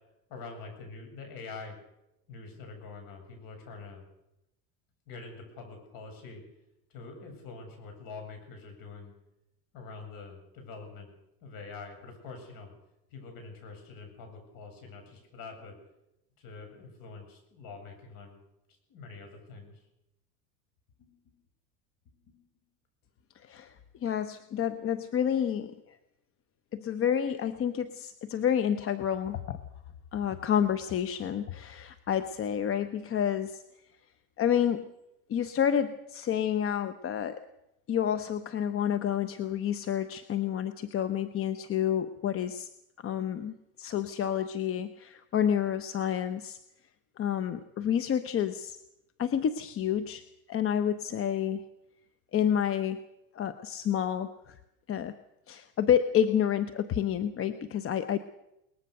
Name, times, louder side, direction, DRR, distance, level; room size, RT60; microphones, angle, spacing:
voice 1, 0.3-1.8 2.3-4.0 5.1-6.4 6.9-9.1 9.7-11.1 11.4-12.7 13.1-15.8 16.4-18.4 18.9-19.8 21.0-21.3 22.0-22.4, left 4 dB, 50° left, 4 dB, 7.8 m, -45 dB
voice 2, 23.4-23.7 24.0-26.0 26.7-29.6 30.1-33.6 34.4-34.9 35.3-37.4 37.9-42.7 43.0-46.6 47.2-48.8 49.2-50.2 50.5-51.6 52.3-53.0 53.3-54.6 54.9-55.1 55.5-58.2, left 9 dB, 30° left, 11 dB, 0.9 m, -29 dB
21.5 x 20.0 x 6.7 m, 0.86 s
supercardioid pair, 115°, 43 cm